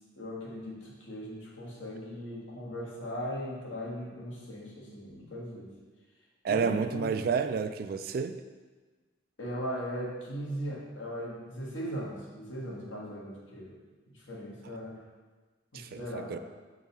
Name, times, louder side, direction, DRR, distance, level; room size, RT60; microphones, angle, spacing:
voice 1, 0.1-5.7 6.5-7.2 9.4-13.7 14.1-15.0 15.7-16.4, equal, 80° left, -4 dB, 1.5 m, -38 dB
voice 2, 6.4-8.4 15.7-16.4, right 5 dB, 50° right, 10 dB, 0.3 m, -30 dB
6.9 x 3.8 x 4.1 m, 1.3 s
head